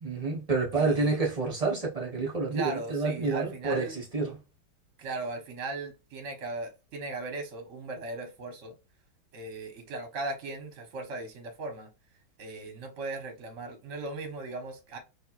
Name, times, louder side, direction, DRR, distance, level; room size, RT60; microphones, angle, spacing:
voice 1, 0.0-4.4, right 3 dB, 35° right, 0.6 m, -29 dB
voice 2, 0.7-1.2 2.5-4.0 5.0-8.7 9.3-11.9 12.4-15.0, right 3 dB, 55° right, 0.9 m, -38 dB
5.3 x 2.4 x 2.3 m
omnidirectional pair, 2.2 m